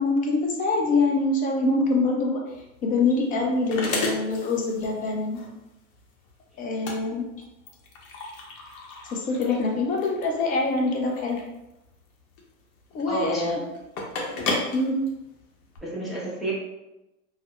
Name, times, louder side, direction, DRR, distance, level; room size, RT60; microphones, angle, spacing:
voice 1, 0.0-2.4 2.8-5.4 6.6-7.3 9.1-11.4 12.9-13.6 14.7-15.0, left 3 dB, 20° left, 0 dB, 0.3 m, -24 dB
sound 1, 2.5-15.8, left 2 dB, 70° left, 0.7 m, -35 dB
voice 2, 13.1-13.6 15.8-16.5, right 1 dB, ahead, -7 dB, 0.7 m, -30 dB
2.7 x 2.1 x 2.3 m, 0.95 s
hypercardioid pair, 100°, 42 cm